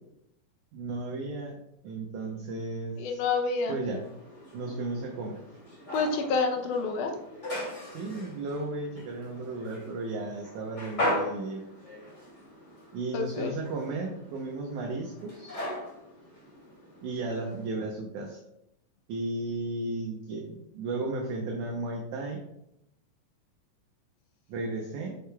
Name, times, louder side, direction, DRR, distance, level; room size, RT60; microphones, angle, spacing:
voice 1, 0.7-1.6 1.8-3.2 3.7-4.0 4.5-5.5 7.9-11.6 12.9-15.7 17.0-18.4 19.1-22.4 24.5-25.2, right 2 dB, 70° right, 0 dB, 2.1 m, -34 dB
voice 2, 3.0-3.8 5.9-7.2 13.1-13.5, left 4 dB, 75° left, 4 dB, 2.1 m, -28 dB
sound 1, 3.9-17.7, left 1 dB, 25° left, 2.7 m, -39 dB
8.2 x 6.4 x 2.3 m, 0.82 s
omnidirectional pair, 3.9 m